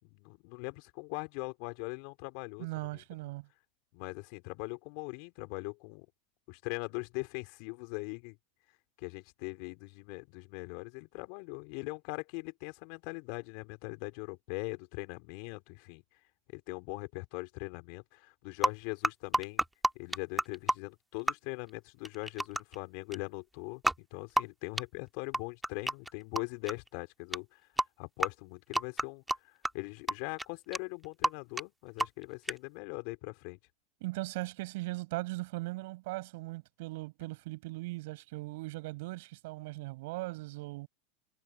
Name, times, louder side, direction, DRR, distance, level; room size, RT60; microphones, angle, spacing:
voice 1, 0.0-3.0 3.9-6.1 6.5-8.4 9.0-16.0 16.5-19.6 19.9-27.6 28.0-33.6, left 32 dB, 60° left, 4.3 m, -41 dB
voice 2, 2.6-3.5 34.0-40.9, right 21 dB, 70° right, 7.2 m, -39 dB
sound 1, 18.6-18.7 19.0-20.7 21.3-21.4 22.0-22.8 23.1-23.2 23.8-24.0 24.4-24.5 24.8-24.9 25.3-26.1 26.4-26.9 27.3-27.4 27.8-27.9 28.2-28.3 28.7-29.4 29.6-29.7 30.1-30.2 30.4-30.5 30.7-30.8 31.0-31.3 31.6-31.7 32.0-32.2 32.5-32.6, right 1 dB, 5° right, 1.5 m, -28 dB
hypercardioid pair, 105°, 0 cm